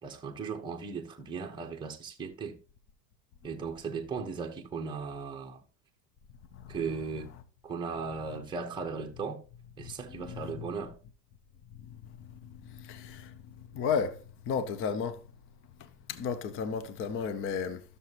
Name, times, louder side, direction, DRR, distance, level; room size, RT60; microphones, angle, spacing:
voice 1, 0.0-2.6 3.4-5.6 6.7-7.3 7.6-9.4 9.8-10.9, right 5 dB, 10° right, 1.1 m, -37 dB
voice 2, 12.7-13.3 13.7-14.2 14.5-15.2 16.1-17.8, left 6 dB, 25° left, 0.7 m, -32 dB
13.0 x 6.8 x 3.0 m
supercardioid pair, 135°, 49 cm